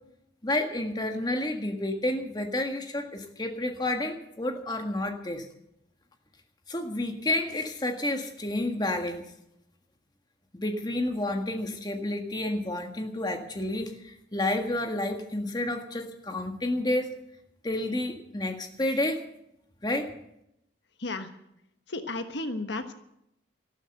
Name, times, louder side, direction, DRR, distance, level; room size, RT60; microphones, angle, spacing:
voice 1, 0.4-5.5 6.7-9.2 10.5-17.1 17.6-19.2 19.8-20.1, left 1 dB, 25° left, 5 dB, 1.6 m, -30 dB
voice 2, 21.9-22.9, left 2 dB, 80° left, 8 dB, 1.3 m, -33 dB
14.0 x 12.5 x 7.9 m, 0.79 s
head